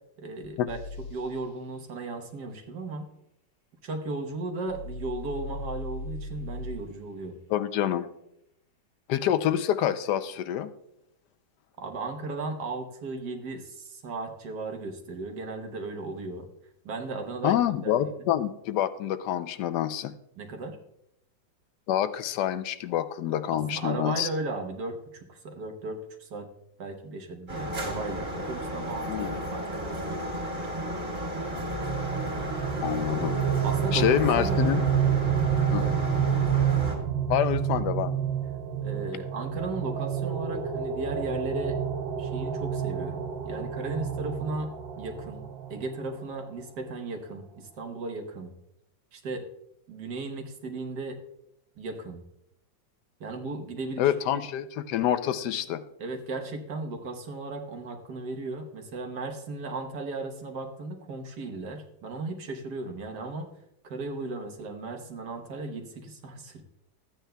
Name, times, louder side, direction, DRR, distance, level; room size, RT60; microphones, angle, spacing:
voice 1, 0.2-0.8 1.1-3.0 3.8-7.4 11.8-16.5 16.8-17.6 17.8-18.3 20.4-20.8 23.5-26.5 26.8-30.2 33.6-34.8 35.8-36.1 38.8-41.8 42.2-45.4 45.7-48.5 49.1-49.4 49.9-51.2 51.8-52.2 53.2-54.4 56.0-63.5 63.8-66.6, right 3 dB, 65° right, 4 dB, 1.6 m, -36 dB
sound 1, 0.7-1.2 4.7-6.8, left 2 dB, 50° left, 1.5 m, -38 dB
voice 2, 7.5-8.1 9.1-10.7 17.4-20.1 21.9-24.3 29.1-29.3 32.8-33.4 33.9-34.8 35.7-35.8 37.3-38.2 54.0-55.8, left 11 dB, 75° left, 12 dB, 1.1 m, -27 dB
sound 2, 27.5-37.0, equal, 30° right, 2.6 m, -33 dB
sound 3, 31.4-46.1, right 8 dB, 80° right, 1.5 m, -29 dB
14.0 x 9.0 x 2.2 m, 0.80 s
omnidirectional pair, 2.0 m